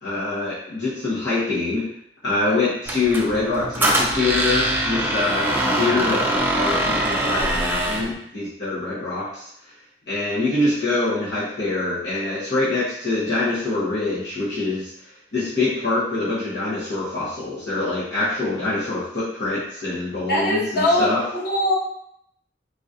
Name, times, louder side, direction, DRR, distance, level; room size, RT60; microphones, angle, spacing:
voice 1, 0.0-1.9 2.2-5.5 5.8-9.5 10.1-14.9 15.3-21.2, left 2 dB, 80° left, -10 dB, 1.1 m, -24 dB
Squeak, 2.9-8.1, right 1 dB, 10° right, 0.4 m, -23 dB
voice 2, 20.3-21.8, left 1 dB, 55° left, -6 dB, 1.1 m, -21 dB
3.9 x 2.4 x 2.7 m, 0.72 s
head